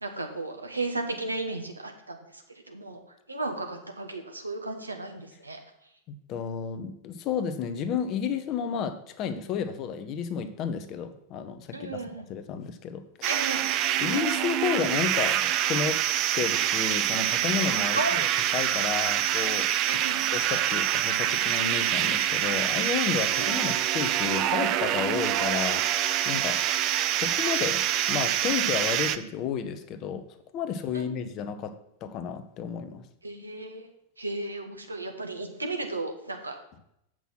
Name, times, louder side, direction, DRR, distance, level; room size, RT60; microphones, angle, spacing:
voice 1, 0.0-3.0 3.3-5.6 11.7-12.2 13.3-13.6 17.9-18.2 19.9-20.2 23.3-23.7 30.9-31.3 33.2-33.9 34.2-36.6, right 2 dB, 80° right, 4 dB, 1.3 m, -34 dB
voice 2, 6.3-12.0 12.3-13.3 14.0-16.0 16.3-20.0 20.3-25.8 26.2-26.6 27.1-27.8 28.1-30.2 30.5-31.7 32.0-33.0, left 7 dB, 35° left, 9 dB, 0.9 m, -32 dB
sound 1, 13.2-29.2, right 12 dB, 40° right, 0.5 m, -26 dB
8.2 x 6.1 x 5.9 m, 0.77 s
figure-of-eight pair, 90°, 0 cm